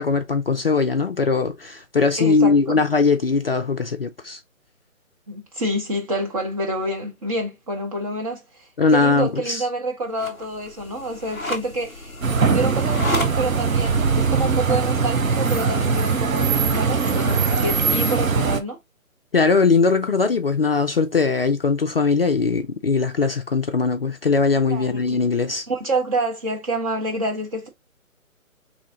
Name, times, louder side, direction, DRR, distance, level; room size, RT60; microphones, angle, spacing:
voice 1, 0.0-4.4 8.8-9.6 19.3-25.7, left 4 dB, 45° left, 0.5 m, -20 dB
voice 2, 2.2-2.8 5.3-12.1 12.5-18.8 24.7-25.2 25.7-27.7, right 1 dB, 25° right, 1.1 m, -28 dB
sound 1, 10.1-15.9, left 1 dB, 5° left, 0.7 m, -34 dB
sound 2, 12.2-18.6, right 5 dB, 70° right, 1.0 m, -21 dB
4.2 x 3.1 x 3.7 m
figure-of-eight pair, 150°, 42 cm